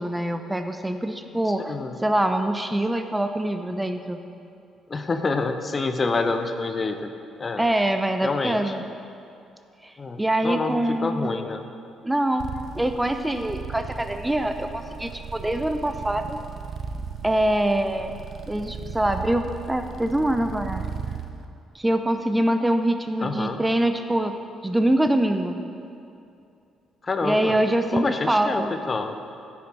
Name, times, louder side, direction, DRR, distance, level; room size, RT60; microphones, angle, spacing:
voice 1, 0.0-4.2 7.6-8.8 9.8-11.5 12.0-12.4 12.7-16.4 17.2-18.1 18.5-20.9 21.7-25.6 27.2-28.7, right 1 dB, 10° right, 8 dB, 0.7 m, -24 dB
voice 2, 4.9-7.1 7.4-7.6 8.2-8.7 10.0-11.6 23.2-23.6 27.0-27.6 27.9-29.2, left 3 dB, 30° left, 8 dB, 0.8 m, -27 dB
sound 1, 12.4-21.3, right 5 dB, 45° right, 0.7 m, -36 dB
15.5 x 8.6 x 4.1 m, 2.6 s
figure-of-eight pair, 45°, 0 cm